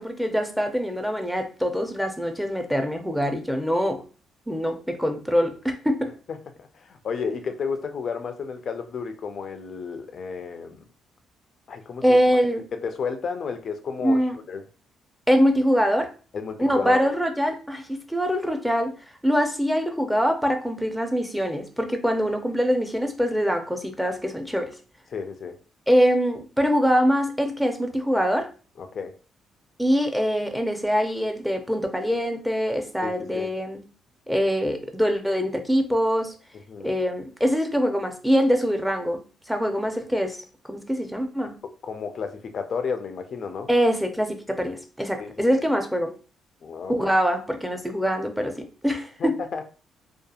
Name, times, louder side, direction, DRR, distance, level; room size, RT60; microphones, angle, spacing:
voice 1, 0.0-4.0 4.5-6.1 12.0-12.6 14.0-14.4 15.3-16.1 16.6-18.9 19.2-24.7 25.9-28.5 29.8-33.8 34.3-36.3 36.8-39.2 39.5-41.5 43.7-46.1 46.9-49.4, equal, ahead, 5 dB, 0.5 m, -24 dB
voice 2, 6.3-10.8 11.7-12.4 12.7-14.6 16.3-17.1 25.1-25.6 28.8-29.1 33.0-33.5 36.7-37.0 41.8-43.7 45.2-45.3 46.6-46.9 49.2-49.6, left 5 dB, 55° left, 7 dB, 0.3 m, -32 dB
2.7 x 2.3 x 2.3 m, 0.36 s
cardioid pair, 90°, 0 cm